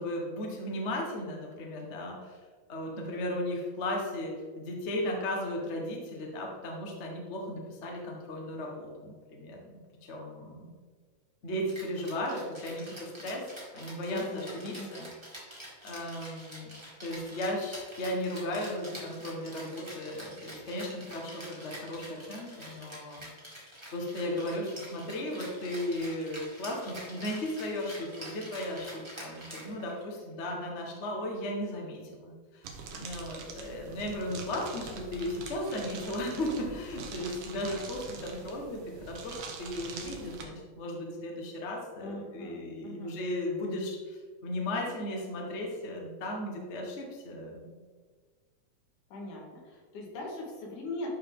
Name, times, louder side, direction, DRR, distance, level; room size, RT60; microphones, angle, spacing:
voice 1, 0.0-2.4 2.7-10.7 11.4-15.1 15.8-23.3 23.9-47.8, left 1 dB, 55° left, 0 dB, 0.7 m, -36 dB
Rattle (instrument), 11.7-30.2, right 1 dB, 10° right, 1.6 m, -47 dB
voice 2, 14.1-15.0 42.0-43.2 49.1-51.1, left 1 dB, 80° left, -2 dB, 3.1 m, -41 dB
sound 1, 32.6-40.4, right 5 dB, 65° right, 1.5 m, -44 dB
11.5 x 4.7 x 3.6 m, 1.5 s
omnidirectional pair, 3.6 m